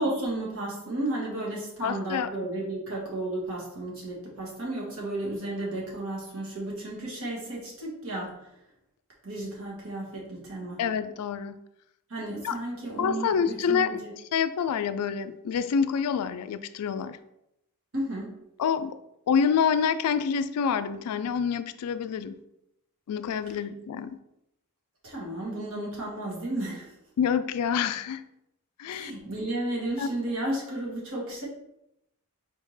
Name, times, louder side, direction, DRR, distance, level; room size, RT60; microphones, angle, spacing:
voice 1, 0.0-8.3 9.2-10.8 12.1-14.1 17.9-18.3 25.0-26.9 28.9-31.4, right 1 dB, 65° right, -4 dB, 1.5 m, -33 dB
voice 2, 1.8-2.3 10.8-11.6 12.4-12.5 13.0-14.0 14.3-17.2 18.6-18.9 19.3-22.4 23.1-24.2 27.2-28.2 28.8-29.1 30.0-30.1, left 7 dB, 90° left, 12 dB, 0.3 m, -27 dB
4.4 x 3.5 x 3.2 m, 0.84 s
head